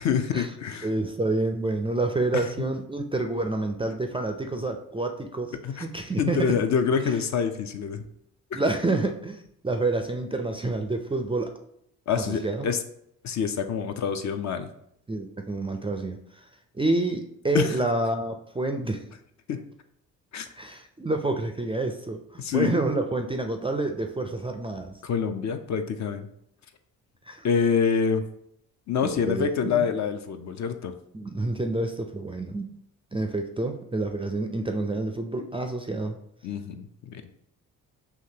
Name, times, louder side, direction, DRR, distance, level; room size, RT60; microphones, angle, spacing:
voice 1, 0.0-0.9 2.3-2.5 5.5-8.0 8.5-8.6 12.1-12.8 13.2-14.7 17.5-17.8 19.5-19.6 20.3-20.5 22.4-22.7 25.0-26.3 27.4-28.2 28.9-30.9 36.4-37.2, left 6 dB, 40° left, 8 dB, 0.5 m, -26 dB
voice 2, 0.8-6.6 7.0-7.1 8.5-11.5 12.2-12.7 15.1-16.4 16.7-19.0 20.5-25.0 27.2-27.5 29.0-29.8 31.1-32.7 33.1-36.2, right 2 dB, 15° right, 5 dB, 0.4 m, -28 dB
5.8 x 2.8 x 2.8 m, 0.72 s
hypercardioid pair, 45°, 43 cm